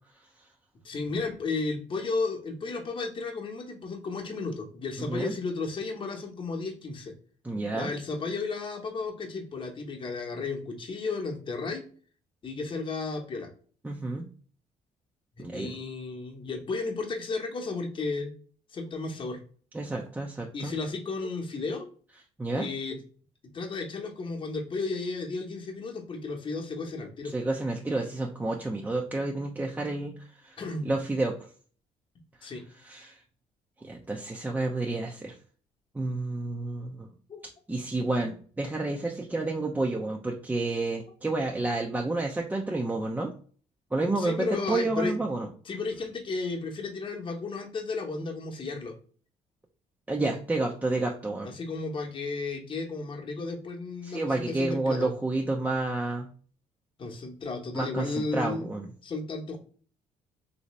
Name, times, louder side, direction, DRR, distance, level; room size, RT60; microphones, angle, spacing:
voice 1, 0.8-7.1 7.7-11.8 12.4-13.5 15.4-18.3 18.7-19.4 20.5-21.9 22.5-23.0 23.5-27.3 30.6-30.9 32.4-32.6 37.3-37.4 44.2-45.2 45.7-49.0 51.4-55.1 57.0-58.7 59.0-59.6, left 3 dB, 35° left, 1 dB, 0.9 m, -33 dB
voice 2, 7.4-7.9 13.8-14.3 15.4-15.7 19.7-20.7 22.4-22.7 27.2-31.3 32.4-32.5 32.8-33.2 33.8-35.3 35.9-37.1 37.7-43.3 43.9-45.5 50.1-51.5 54.0-56.3 57.7-58.9, right 2 dB, 10° right, 0 dB, 0.5 m, -30 dB
3.1 x 2.7 x 3.1 m, 0.43 s
cardioid pair, 85°, 14 cm